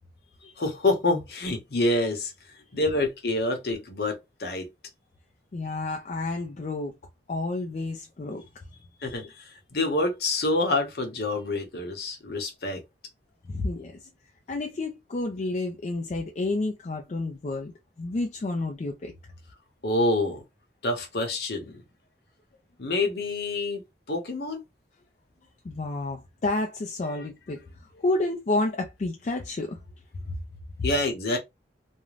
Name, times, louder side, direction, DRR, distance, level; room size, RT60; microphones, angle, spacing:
voice 1, 0.6-2.3 2.7-4.7 9.0-12.8 19.8-20.4 20.8-21.8 22.8-23.8 24.1-24.6 30.8-31.4, left 2 dB, 60° left, 0.8 m, -27 dB
voice 2, 5.5-6.9 7.3-8.4 13.5-14.1 14.5-17.7 18.0-19.1 25.6-29.8 30.3-30.4, left 2 dB, 40° left, 0.4 m, -30 dB
2.4 x 2.1 x 3.1 m
head